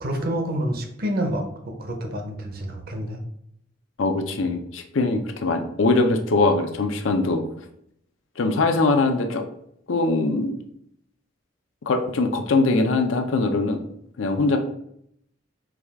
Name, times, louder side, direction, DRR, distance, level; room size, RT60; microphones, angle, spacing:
voice 1, 0.0-3.2, right 1 dB, 50° right, 4 dB, 0.7 m, -28 dB
voice 2, 4.0-7.4 8.4-9.4 9.9-10.6 11.9-13.8 14.2-14.6, left 3 dB, 90° left, 6 dB, 0.6 m, -22 dB
4.8 x 2.3 x 3.5 m, 0.72 s
head